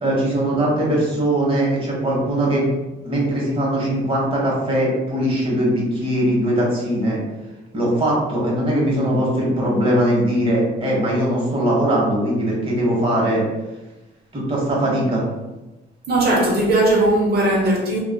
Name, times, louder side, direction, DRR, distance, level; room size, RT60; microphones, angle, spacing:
voice 1, 0.0-2.7 3.0-7.2 7.7-13.4 14.3-15.2, right 1 dB, 30° right, -4 dB, 1.0 m, -20 dB
voice 2, 16.1-18.0, right 1 dB, 50° right, -3 dB, 0.9 m, -18 dB
2.5 x 2.3 x 2.2 m, 1.1 s
cardioid pair, 90°, 20 cm